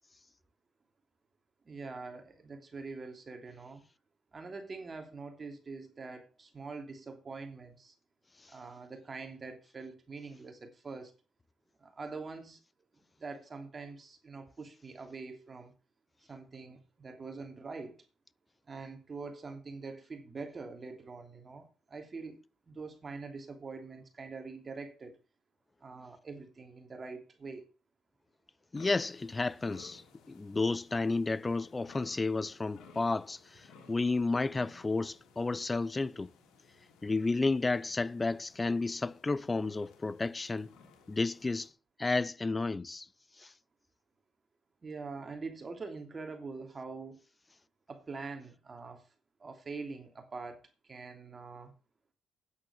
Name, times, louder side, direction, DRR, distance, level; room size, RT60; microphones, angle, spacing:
voice 1, 1.6-3.8 4.3-7.9 8.5-11.1 11.8-12.6 13.2-15.7 16.3-18.0 18.7-25.2 25.8-27.7 44.8-47.2 47.9-49.1 49.4-51.7, right 4 dB, 35° right, 2.9 m, -44 dB
sound 1, 28.7-41.7, left 5 dB, 85° left, 3.0 m, -59 dB
voice 2, 28.7-30.0 30.3-36.3 37.0-40.7 41.1-41.7 42.0-43.1 43.4-43.5, left 3 dB, 20° left, 0.6 m, -32 dB
9.6 x 8.7 x 7.2 m
cardioid pair, 90°, 0 cm